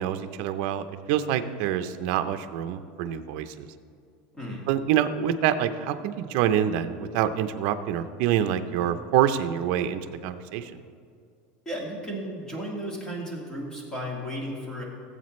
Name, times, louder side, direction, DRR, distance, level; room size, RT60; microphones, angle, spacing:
voice 1, 0.0-3.7 4.7-10.7, right 10 dB, 55° right, 9 dB, 0.6 m, -26 dB
voice 2, 4.3-4.7 11.7-14.8, equal, 15° left, -2 dB, 2.0 m, -34 dB
18.0 x 8.0 x 3.2 m, 2.3 s
supercardioid pair, 165°, 5 cm